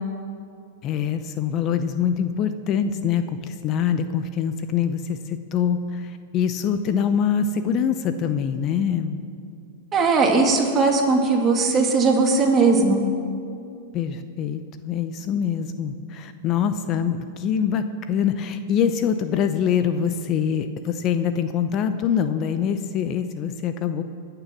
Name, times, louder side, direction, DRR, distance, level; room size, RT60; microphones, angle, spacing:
voice 1, 0.8-9.2 13.9-24.0, left 8 dB, 40° left, 10 dB, 0.6 m, -24 dB
voice 2, 9.9-13.0, right 3 dB, 25° right, 1 dB, 2.2 m, -19 dB
20.0 x 6.9 x 6.0 m, 2.5 s
hypercardioid pair, 125°, 0 cm